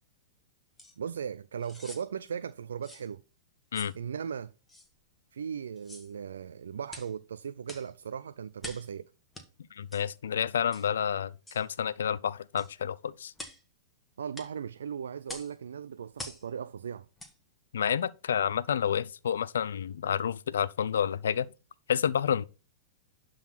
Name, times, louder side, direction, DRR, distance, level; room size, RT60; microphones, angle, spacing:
sound 1, 0.8-0.9 1.6-2.1 2.8-3.1 3.7-4.0 4.7-4.9 5.8-6.1 6.9-7.1 7.7-7.9 8.6-8.9 9.3-9.5 9.9-10.1 10.7-10.9 11.5-11.7 12.6-12.7 13.4-13.6 14.3-14.5 15.3-15.5 16.2-16.4 17.2-17.3 17.8-17.9, left 1 dB, 10° left, 1.8 m, -45 dB
voice 1, 1.0-3.2 3.9-4.5 5.3-9.1 14.2-17.1, right 7 dB, 85° right, 0.4 m, -37 dB
voice 2, 9.7-13.3 17.7-21.5 21.9-22.4, left 8 dB, 80° left, 0.5 m, -29 dB
11.5 x 3.9 x 5.8 m
hypercardioid pair, 120°, 0 cm